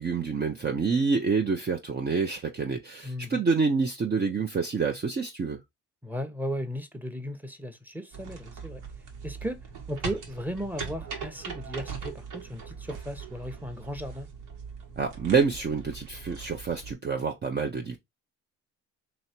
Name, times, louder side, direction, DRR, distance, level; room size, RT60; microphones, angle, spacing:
voice 1, 0.0-5.6 15.0-18.0, right 5 dB, 30° right, 0.7 m, -27 dB
voice 2, 3.0-3.4 6.0-8.8 9.2-14.3, equal, 5° right, 0.9 m, -36 dB
sound 1, 8.1-16.9, right 5 dB, 70° right, 1.5 m, -40 dB
3.1 x 3.0 x 4.3 m
supercardioid pair, 80°, 33 cm